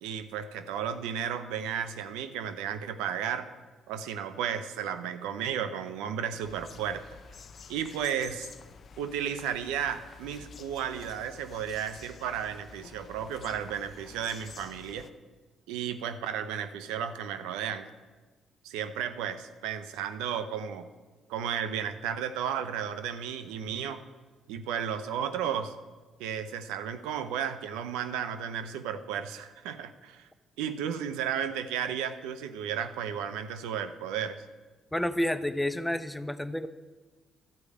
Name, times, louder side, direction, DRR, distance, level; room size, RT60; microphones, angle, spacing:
voice 1, 0.0-3.5 3.9-7.0 7.7-8.5 9.0-15.1 15.7-17.9 18.6-20.8 21.3-24.0 24.5-25.7 26.2-30.3 30.6-34.4, right 8 dB, 85° right, 10 dB, 0.6 m, -33 dB
sound 1, 6.4-15.1, left 5 dB, 55° left, 0.6 m, -50 dB
voice 2, 34.9-36.7, left 1 dB, 10° left, 13 dB, 0.7 m, -30 dB
12.0 x 4.9 x 8.3 m, 1.3 s
supercardioid pair, 55°, 0 cm